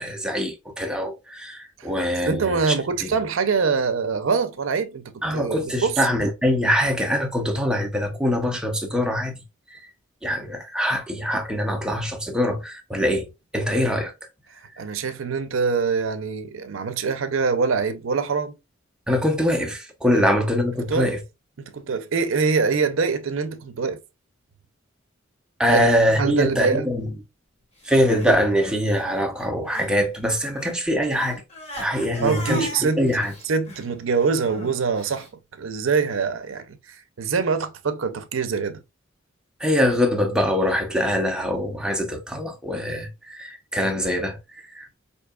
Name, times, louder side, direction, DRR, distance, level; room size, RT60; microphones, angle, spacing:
voice 1, 0.0-3.2 5.2-9.4 9.7-9.9 10.2-13.3 13.5-14.1 19.1-21.2 25.6-27.1 27.8-31.4 31.7-33.3 39.6-44.9, equal, 5° right, 0.5 m, -23 dB
voice 2, 2.3-6.0 14.8-18.6 20.9-21.1 21.6-24.0 25.7-25.9 26.2-26.9 32.2-33.0 33.5-35.3 35.6-38.8, right 5 dB, 75° right, 0.5 m, -24 dB
Crying sobbing, 27.8-30.0 30.2-35.3, left 1 dB, 30° left, 1.1 m, -39 dB
4.5 x 2.7 x 2.2 m
head